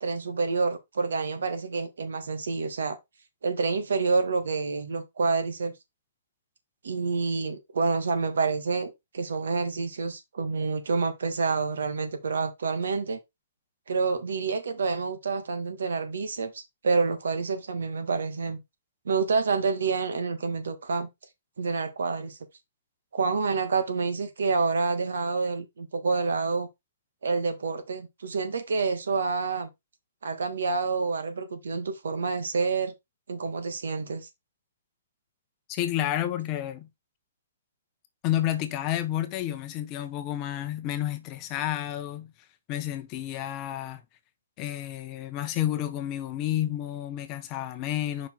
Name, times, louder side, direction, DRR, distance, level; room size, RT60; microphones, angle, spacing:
voice 1, 0.0-3.0 3.4-5.7 6.8-13.2 13.9-18.6 19.0-21.1 21.6-22.4 23.1-26.7 27.2-29.7 30.2-32.9 33.3-34.3, right 4 dB, 85° right, 1.6 m, -28 dB
voice 2, 35.7-36.9 38.2-42.3 42.7-44.0 44.6-48.3, left 12 dB, 20° left, 0.7 m, -30 dB
5.3 x 4.3 x 4.3 m
hypercardioid pair, 170°, 0 cm